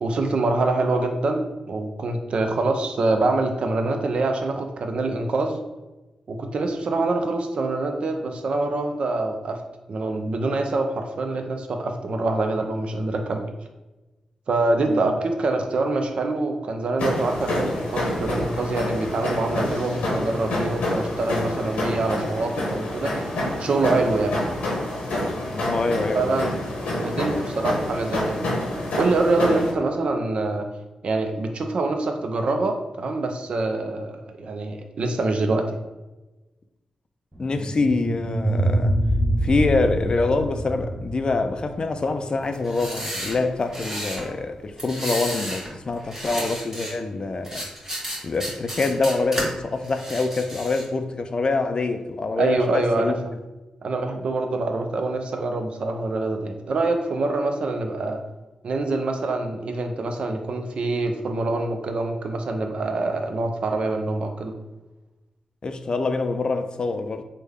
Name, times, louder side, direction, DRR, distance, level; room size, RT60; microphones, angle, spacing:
voice 1, 0.0-5.6 6.3-9.6 9.9-13.5 14.5-23.3 23.6-24.3 26.1-26.6 27.0-28.4 28.9-30.7 31.0-35.7 52.4-53.1 53.8-58.2 58.6-64.5, right 2 dB, 65° right, 0.4 m, -25 dB
voice 2, 14.8-15.2 25.5-26.5 37.4-39.0 39.4-47.7 48.2-53.2 65.6-67.2, left 3 dB, 45° left, 0.3 m, -25 dB
sound 1, 17.0-29.7, left 1 dB, 85° left, 0.8 m, -27 dB
sound 2, 37.3-42.4, right 1 dB, 5° right, 0.6 m, -25 dB
sound 3, 42.5-44.3 44.8-45.7 46.0-46.9 47.4-49.4 49.8-50.9, equal, 25° right, 1.4 m, -32 dB
3.2 x 2.1 x 3.5 m
cardioid pair, 50°, 2 cm